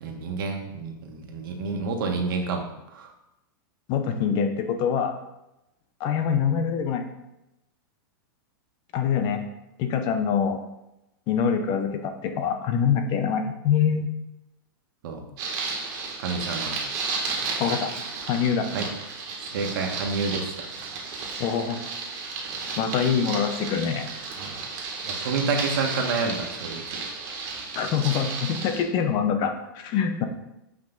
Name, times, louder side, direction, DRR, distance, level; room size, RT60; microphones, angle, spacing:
voice 1, 0.0-2.6 2.9-3.1 15.0-15.2 16.2-16.8 18.7-18.9 19.5-20.7 21.2-21.3 24.4-24.5 25.0-27.1, right 4 dB, 65° right, 3 dB, 1.5 m, -29 dB
voice 2, 3.9-5.2 6.0-7.0 8.9-9.4 9.8-10.6 11.3-14.1 17.6-17.9 18.3-18.7 21.4-21.9 22.8-24.1 27.7-30.3, left 7 dB, 35° left, 7 dB, 0.8 m, -24 dB
sound 1, 15.4-28.8, right 4 dB, 35° right, 1.9 m, -33 dB
8.1 x 5.1 x 3.9 m, 0.89 s
supercardioid pair, 145°, 12 cm